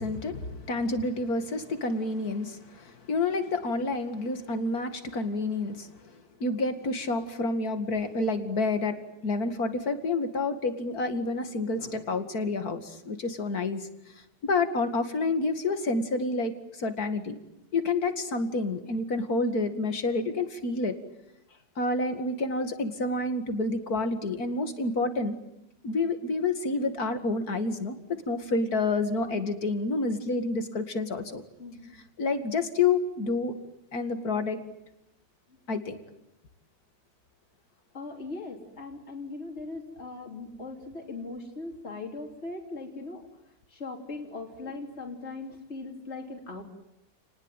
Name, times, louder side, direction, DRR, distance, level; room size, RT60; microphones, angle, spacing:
voice 1, 0.0-5.9 6.4-9.0 9.2-13.9 14.4-17.3 17.7-20.9 21.8-25.4 25.8-31.4 32.2-33.5 33.9-34.6 35.7-36.0, left 3 dB, 55° left, 8 dB, 2.7 m, -29 dB
voice 2, 31.6-32.0 35.5-35.6 37.9-43.2 43.7-46.6, left 3 dB, 35° left, 2 dB, 3.8 m, -39 dB
30.0 x 19.5 x 9.2 m, 0.87 s
omnidirectional pair, 1.9 m